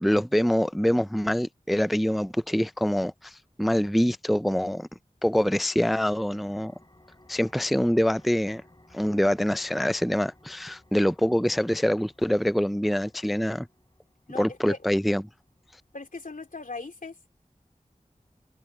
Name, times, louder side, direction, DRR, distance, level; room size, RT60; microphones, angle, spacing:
voice 1, 0.0-4.9 5.2-6.7 7.3-8.6 8.9-13.7 14.3-15.2, equal, ahead, 0.4 m, -25 dB
sound 1, 5.4-16.8, left 1 dB, 30° left, 4.7 m, -60 dB
voice 2, 14.3-14.8 15.9-17.1, left 3 dB, 80° left, 3.0 m, -39 dB
wide cardioid pair, 40°, 14 cm